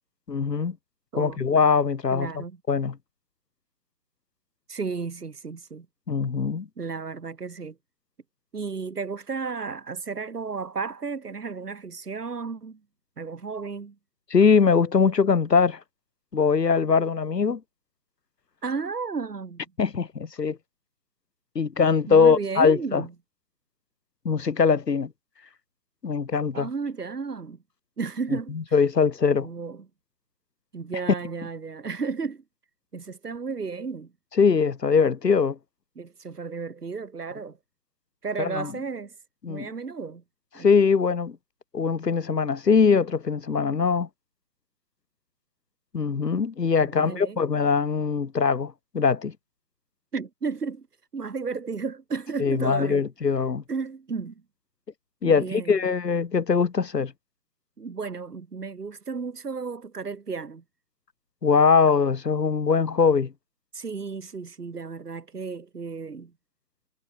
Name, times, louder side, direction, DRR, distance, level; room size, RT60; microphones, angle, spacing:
voice 1, 0.3-0.8 1.2-2.9 6.1-6.7 14.3-15.8 16.3-17.6 19.8-20.6 21.5-23.0 24.2-25.1 26.0-26.7 28.7-29.5 34.4-35.6 38.4-38.7 39.4-39.7 40.6-41.4 41.7-44.1 45.9-49.3 52.4-53.6 55.2-57.1 61.4-63.3, left 5 dB, 75° left, 2.5 m, -22 dB
voice 2, 1.1-1.4 2.1-2.6 4.7-5.9 6.8-7.8 8.5-12.8 13.2-14.0 18.6-19.7 22.1-23.1 26.5-27.6 28.0-28.8 29.4-29.9 30.7-32.4 32.9-34.1 36.0-37.6 38.2-39.2 39.5-40.2 40.5-40.7 46.8-47.4 50.1-50.9 51.1-53.1 53.7-54.4 55.2-55.9 57.8-60.6 63.7-66.3, right 5 dB, 70° right, 5.1 m, -33 dB
hypercardioid pair, 180°, 49 cm